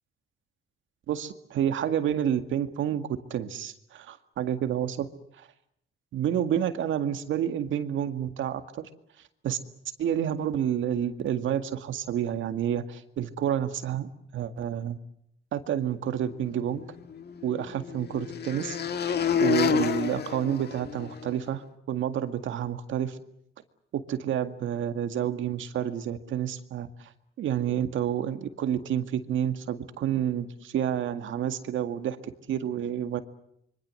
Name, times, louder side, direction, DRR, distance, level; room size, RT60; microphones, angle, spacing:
voice 1, 1.1-5.1 5.4-5.5 6.1-8.9 9.4-9.6 10.0-15.0 15.5-16.8 17.4-18.8 19.4-23.2 23.9-27.1 27.4-33.2, right 10 dB, 75° right, 9 dB, 2.0 m, -29 dB
sound 1, 16.7-21.3, left 7 dB, 55° left, 1.8 m, -29 dB
26.0 x 24.0 x 7.7 m, 0.73 s
cardioid pair, 90°, 20 cm